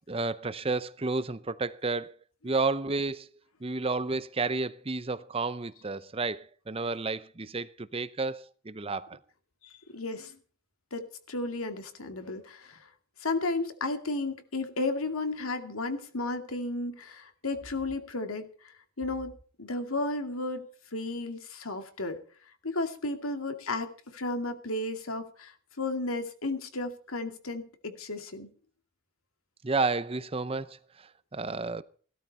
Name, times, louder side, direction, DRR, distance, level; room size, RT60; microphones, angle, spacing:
voice 1, 0.1-2.1 2.4-3.3 3.6-9.2 29.6-31.8, right 3 dB, 25° right, 0.6 m, -31 dB
voice 2, 9.6-10.4 10.9-12.9 13.2-19.3 19.6-20.6 20.9-22.2 22.6-28.5, left 2 dB, 85° left, 2.4 m, -33 dB
17.0 x 13.0 x 4.2 m
head